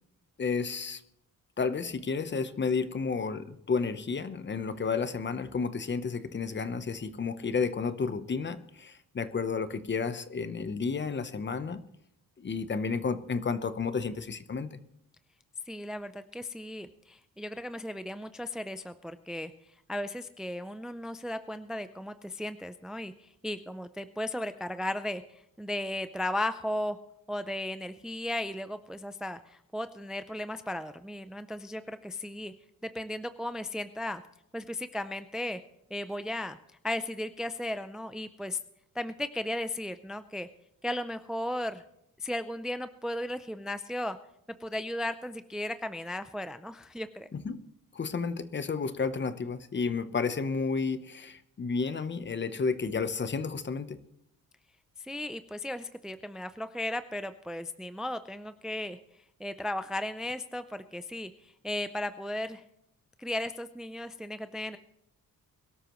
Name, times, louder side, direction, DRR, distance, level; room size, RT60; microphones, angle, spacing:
voice 1, 0.4-1.0 1.6-11.8 12.4-14.8 47.3-47.7 47.9-54.0, left 5 dB, 35° left, 12 dB, 0.9 m, -31 dB
voice 2, 15.7-19.5 19.9-27.0 27.3-32.5 32.8-34.2 34.5-35.6 35.9-36.6 36.8-38.6 38.9-40.5 40.8-41.8 42.2-44.2 44.6-47.3 55.0-59.0 59.4-62.6 63.2-64.8, left 1 dB, ahead, 11 dB, 0.5 m, -35 dB
22.5 x 12.5 x 3.1 m, 0.79 s
cardioid pair, 110°, 34 cm